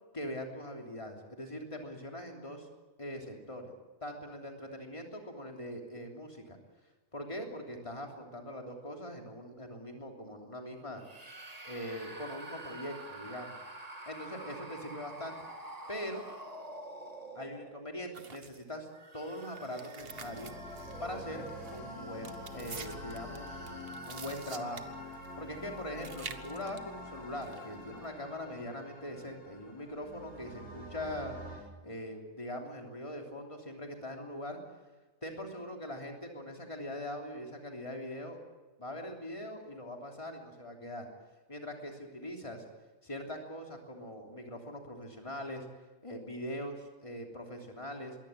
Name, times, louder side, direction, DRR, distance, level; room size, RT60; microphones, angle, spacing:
voice 1, 0.1-2.7 3.0-3.7 4.0-6.6 7.1-11.0 11.6-13.6 14.1-15.4 15.9-16.2 17.3-18.9 19.1-20.5 21.0-23.8 24.1-24.9 25.3-31.4 31.8-34.6 35.2-38.4 38.8-41.1 41.5-42.6 43.0-45.7 46.0-48.2, left 1 dB, 25° left, 2 dB, 3.2 m, -42 dB
sound 1, 11.0-18.0 18.7-25.3, right 1 dB, 30° right, 2.0 m, -48 dB
sound 2, 18.1-18.6 19.4-21.2 21.5-21.8 22.2-25.5 25.8-26.8 27.4-27.8, right 5 dB, 50° right, 1.4 m, -47 dB
sound 3, 20.0-31.6, left 1 dB, 60° left, 6.4 m, -46 dB
22.5 x 17.0 x 9.2 m, 1.2 s
omnidirectional pair, 1.3 m